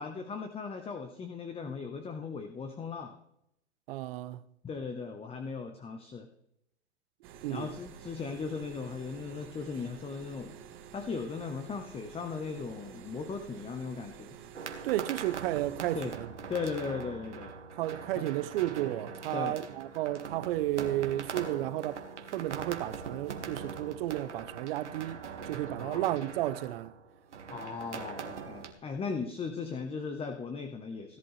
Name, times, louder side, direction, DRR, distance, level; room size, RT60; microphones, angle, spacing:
voice 1, 0.0-3.1 4.6-6.3 7.5-10.6 10.9-14.3 15.9-16.1 16.5-17.5 18.1-18.2 19.3-19.6 25.8-26.2 27.5-31.2, left 5 dB, 15° left, 1.0 m, -37 dB
voice 2, 3.9-4.4 7.4-7.7 14.8-16.3 17.8-22.0 22.3-26.9, right 15 dB, 55° right, 0.9 m, -33 dB
sound 1, 7.2-16.1, right 8 dB, 35° right, 1.5 m, -50 dB
sound 2, 14.5-28.7, right 5 dB, 90° right, 1.9 m, -42 dB
17.0 x 11.0 x 3.3 m
hypercardioid pair, 105°, 34 cm